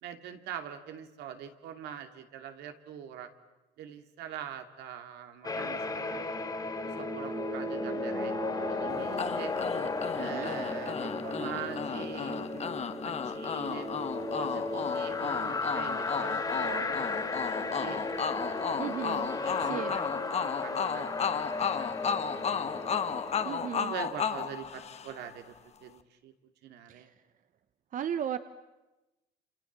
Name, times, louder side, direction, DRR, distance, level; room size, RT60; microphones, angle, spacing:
voice 1, 0.0-3.3 3.8-6.4 6.8-9.5 10.2-12.8 13.0-13.9 14.3-18.1 19.3-22.5 23.9-25.5 25.8-26.3 26.6-27.1, right 9 dB, 80° right, 6 dB, 2.7 m, -43 dB
sound 1, 5.4-23.9, left 3 dB, 25° left, 3.3 m, -35 dB
sound 2, 9.2-25.4, left 7 dB, 40° left, 1.5 m, -34 dB
voice 2, 10.2-10.5 18.8-19.3 19.6-20.0 23.4-23.9 26.9-27.1 27.9-28.4, right 9 dB, 50° right, 11 dB, 1.0 m, -35 dB
29.0 x 28.0 x 7.5 m, 1.0 s
cardioid pair, 110°, 17 cm